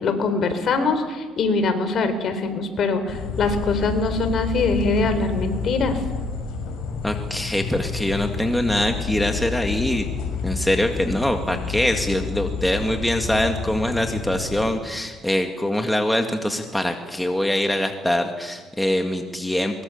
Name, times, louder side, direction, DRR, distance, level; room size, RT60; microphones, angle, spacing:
voice 1, 0.0-6.0, left 3 dB, 50° left, 9 dB, 3.9 m, -23 dB
sound 1, 3.1-14.7, left 6 dB, 75° left, 6.2 m, -29 dB
voice 2, 7.0-10.1 10.4-19.8, left 1 dB, 5° left, 4 dB, 1.9 m, -23 dB
23.5 x 22.5 x 7.2 m, 1.4 s
cardioid pair, 105°, 0 cm